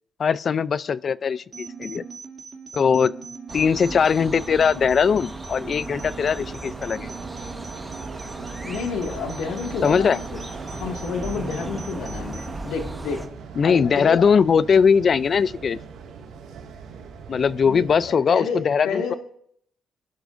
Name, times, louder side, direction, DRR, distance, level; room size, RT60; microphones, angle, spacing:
voice 1, 0.2-2.0 2.7-3.1 3.5-7.1 9.8-10.2 13.6-15.8 17.3-19.1, left 6 dB, 50° left, 18 dB, 0.4 m, -20 dB
sound 1, 1.5-12.5, right 5 dB, 35° right, 2.6 m, -40 dB
sound 2, 3.5-13.3, right 2 dB, 15° right, 1.3 m, -36 dB
sound 3, 5.9-18.1, right 6 dB, 80° right, 2.1 m, -41 dB
voice 2, 8.6-10.4 10.7-13.3 13.6-14.3 17.6-19.2, left 5 dB, 90° left, 1 dB, 2.0 m, -30 dB
23.0 x 11.5 x 2.6 m, 0.66 s
cardioid pair, 90°, 0 cm